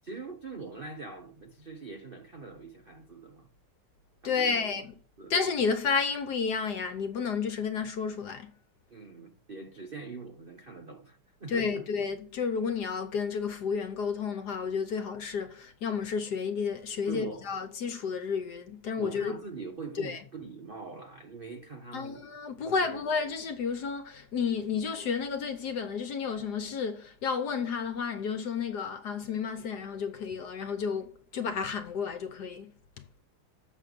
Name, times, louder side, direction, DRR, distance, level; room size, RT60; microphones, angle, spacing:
voice 1, 0.0-3.5 4.2-4.7 5.2-5.3 8.9-11.9 17.1-17.5 19.0-22.3 22.6-23.0, right 4 dB, 65° right, 0.5 m, -43 dB
voice 2, 4.2-4.9 5.3-8.5 11.5-19.3 20.0-20.2 21.9-32.7, left 6 dB, 60° left, 1.2 m, -31 dB
7.4 x 5.6 x 6.6 m
omnidirectional pair, 2.4 m